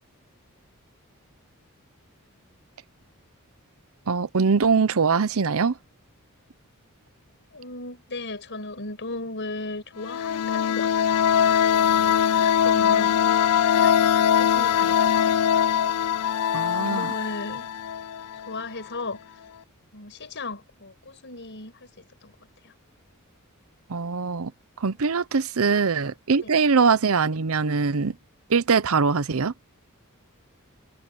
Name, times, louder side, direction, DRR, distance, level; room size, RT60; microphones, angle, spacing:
voice 1, 4.1-5.7 16.5-17.1 23.9-24.5 24.8-28.1 28.5-29.5, right 5 dB, 65° right, 0.7 m, -22 dB
voice 2, 7.5-11.4 11.6-15.4 16.8-17.7 18.3-19.4 19.9-22.3 22.6-22.7 25.7-25.8 26.4-26.5, left 2 dB, 55° left, 5.8 m, -37 dB
sound 1, 10.0-18.6, left 9 dB, 80° left, 0.4 m, -22 dB
head